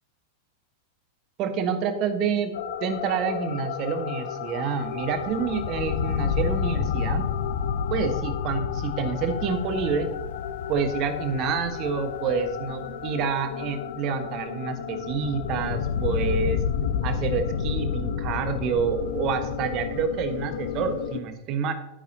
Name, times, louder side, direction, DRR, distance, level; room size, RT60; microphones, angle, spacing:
voice 1, 1.4-2.5 2.8-7.2 7.9-10.1 10.7-16.6 17.0-21.7, right 6 dB, 40° right, 7 dB, 1.4 m, -28 dB
sound 1, 2.5-21.2, left 7 dB, 55° left, 0.7 m, -30 dB
11.5 x 9.7 x 2.9 m, 0.90 s
figure-of-eight pair, 90°, 0 cm